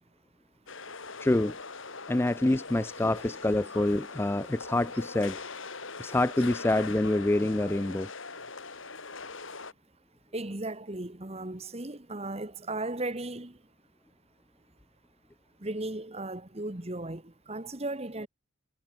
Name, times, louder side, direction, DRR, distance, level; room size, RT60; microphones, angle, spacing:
sound 1, 0.7-9.7, left 4 dB, 65° left, 3.6 m, -41 dB
voice 1, 1.2-1.6 2.1-5.4 6.0-8.1, left 1 dB, 10° left, 0.3 m, -26 dB
voice 2, 10.3-13.6 15.6-18.3, right 2 dB, 30° right, 1.4 m, -36 dB
head